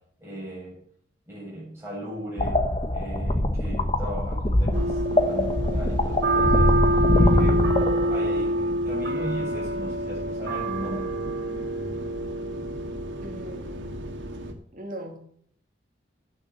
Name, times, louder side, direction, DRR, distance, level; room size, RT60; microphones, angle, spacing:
voice 1, 0.2-0.8 1.3-2.6 2.9-6.7 7.1-7.6 8.1-11.1, equal, 15° right, -6 dB, 7.5 m, -37 dB
sound 1, 2.4-8.5, left 1 dB, 30° left, 1.1 m, -23 dB
sound 2, 4.7-14.5, right 1 dB, 85° right, 1.9 m, -27 dB
voice 2, 13.2-14.0 14.7-15.3, right 1 dB, 45° right, 1 dB, 2.7 m, -39 dB
10.0 x 8.9 x 7.9 m, 0.63 s
head